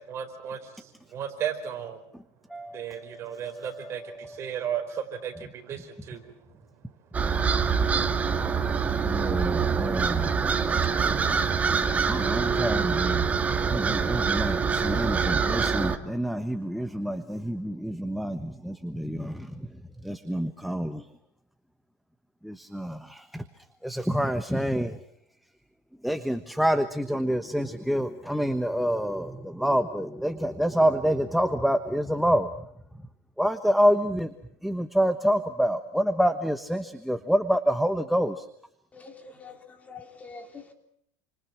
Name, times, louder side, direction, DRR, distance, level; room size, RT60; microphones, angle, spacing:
voice 1, 0.1-2.0 2.7-6.3, right 9 dB, 35° right, 6 dB, 4.7 m, -35 dB
voice 2, 2.5-4.4 9.0-10.4 12.1-13.3 13.7-19.7 20.0-21.0 22.4-23.4 23.8-25.0 26.0-32.5 33.4-34.3 34.6-38.4, equal, ahead, 9 dB, 1.1 m, -27 dB
sound 1, 7.1-16.0, right 5 dB, 15° right, 1.8 m, -25 dB
voice 3, 38.9-40.7, left 4 dB, 15° left, 6 dB, 3.6 m, -45 dB
28.5 x 26.5 x 6.0 m, 0.70 s
supercardioid pair, 150°, 8 cm